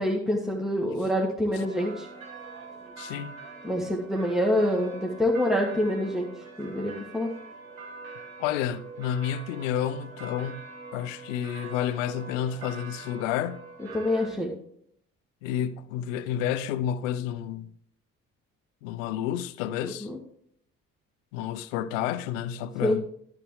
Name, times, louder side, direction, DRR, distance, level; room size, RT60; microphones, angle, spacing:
voice 1, 0.0-2.1 3.6-6.3 6.6-7.3 13.9-14.5 20.0-20.2 22.8-23.0, left 1 dB, ahead, 1.6 m, -26 dB
sound 1, 1.5-14.3, right 4 dB, 80° right, 1.4 m, -44 dB
voice 2, 3.0-3.4 8.4-10.6 10.9-13.6 15.4-17.7 18.8-20.1 21.3-23.0, left 10 dB, 65° left, 0.6 m, -30 dB
12.5 x 7.6 x 3.2 m
figure-of-eight pair, 45°, 40 cm